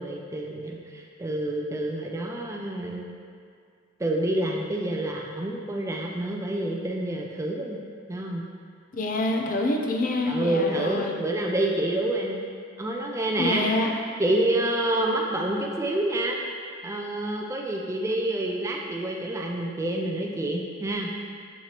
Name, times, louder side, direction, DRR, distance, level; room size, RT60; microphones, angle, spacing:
voice 1, 0.0-3.1 4.0-7.8 8.1-8.4 10.3-12.4 12.8-13.7 14.2-16.4 16.8-21.1, right 1 dB, 15° right, 0 dB, 0.3 m, -28 dB
voice 2, 8.9-11.1 13.4-14.0, left 2 dB, 40° left, 2 dB, 0.5 m, -26 dB
6.6 x 5.8 x 2.9 m, 2.2 s
head